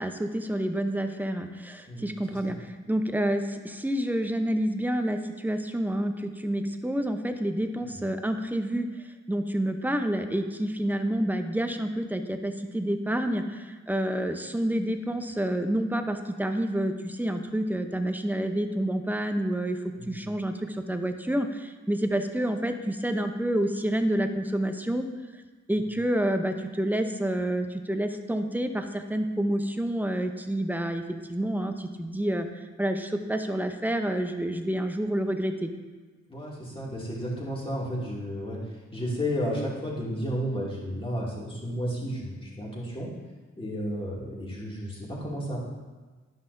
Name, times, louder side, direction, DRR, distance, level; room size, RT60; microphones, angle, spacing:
voice 1, 0.0-8.9 9.3-19.8 20.1-25.1 25.7-31.0 31.3-32.5 32.8-35.7, right 1 dB, 5° right, 6 dB, 0.7 m, -28 dB
voice 2, 1.9-2.6 7.8-8.0 20.0-20.2 36.3-38.6 38.9-43.1 43.6-45.6, equal, 15° left, -5 dB, 2.3 m, -32 dB
10.5 x 5.6 x 2.6 m, 1.3 s
cardioid pair, 60°, 30 cm